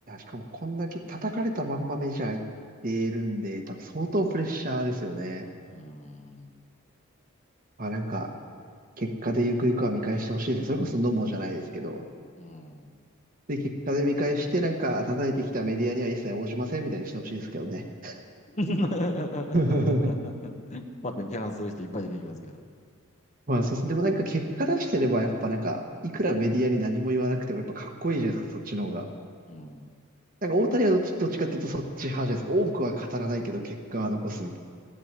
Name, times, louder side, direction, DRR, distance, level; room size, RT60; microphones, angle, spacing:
voice 1, 0.1-2.4 2.8-5.5 7.8-8.3 9.0-12.0 13.5-13.6 13.9-18.2 19.5-20.1 23.5-29.0 30.4-34.6, right 1 dB, 40° right, 3 dB, 1.3 m, -28 dB
voice 2, 5.7-6.6 12.4-12.9 18.5-22.6 29.5-29.9, left 1 dB, 35° left, 4 dB, 1.0 m, -34 dB
14.5 x 7.7 x 9.8 m, 2.1 s
head